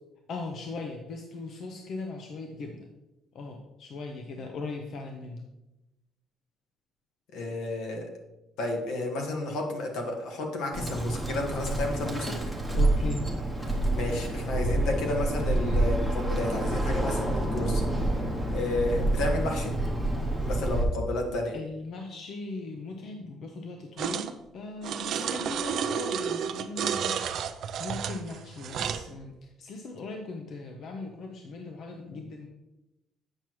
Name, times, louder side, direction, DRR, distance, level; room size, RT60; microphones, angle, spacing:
voice 1, 0.3-2.9 3.3-5.4 12.7-13.2 21.5-27.2 27.8-32.5, left 3 dB, 45° left, 3 dB, 0.7 m, -39 dB
voice 2, 7.3-8.1 8.6-12.3 13.7-17.8 18.5-19.7 20.4-21.5, left 2 dB, 75° left, 2 dB, 1.6 m, -31 dB
Bird, 10.7-20.9, right 1 dB, 5° left, 0.9 m, -28 dB
sound 1, 24.0-24.3 24.8-29.1, right 8 dB, 50° right, 0.4 m, -31 dB
8.7 x 6.0 x 3.1 m, 0.97 s
cardioid pair, 175°, 0 cm